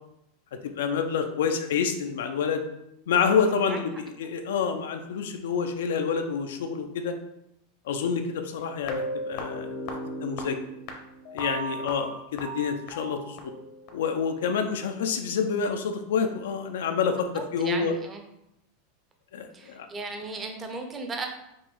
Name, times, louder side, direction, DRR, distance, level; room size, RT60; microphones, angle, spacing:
voice 1, 0.6-2.6 3.1-7.2 7.9-9.7 10.2-10.6 11.3-13.5 13.9-17.9 19.3-19.9, left 6 dB, 85° left, 6 dB, 0.5 m, -28 dB
sound 1, 8.8-13.9, equal, 50° left, 0.7 m, -36 dB
voice 2, 17.3-18.2 19.5-21.3, right 3 dB, 15° right, 4 dB, 0.6 m, -36 dB
5.1 x 2.6 x 3.7 m, 0.82 s
supercardioid pair, 160°, 0 cm